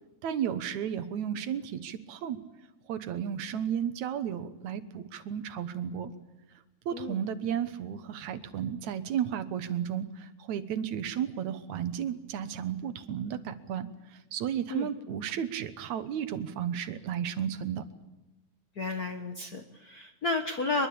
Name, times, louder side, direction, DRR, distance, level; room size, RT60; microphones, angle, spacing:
voice 1, 0.2-2.4 2.9-6.1 6.9-13.9 14.3-17.8, right 9 dB, 75° right, 12 dB, 2.5 m, -33 dB
voice 2, 6.9-7.2 14.7-14.9 18.8-20.9, left 2 dB, 45° left, 6 dB, 1.3 m, -32 dB
23.0 x 22.5 x 8.7 m, 1.0 s
omnidirectional pair, 3.4 m